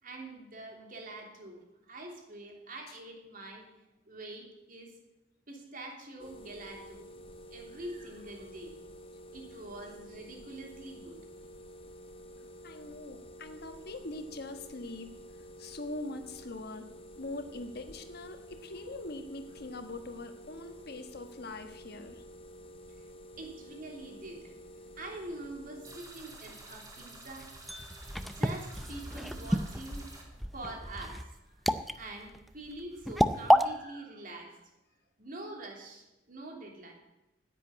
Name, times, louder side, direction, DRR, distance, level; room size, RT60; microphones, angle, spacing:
voice 1, 0.0-1.6 1.9-3.6 4.1-4.9 5.5-7.1 7.5-8.7 9.3-11.2 23.4-24.5 25.0-27.5 28.2-30.3 30.5-31.6 31.9-34.6 35.2-36.9, right 2 dB, 50° right, 1 dB, 3.0 m, -45 dB
sound 1, 6.2-26.0, equal, 30° left, 1.0 m, -50 dB
voice 2, 12.6-15.1 15.6-16.9 17.2-22.2, left 2 dB, 60° left, 7 dB, 1.4 m, -42 dB
sound 2, 25.8-30.2, right 2 dB, 20° right, 2.5 m, -50 dB
sound 3, 27.4-33.7, equal, ahead, 0.5 m, -29 dB
10.0 x 8.5 x 9.4 m, 0.95 s
head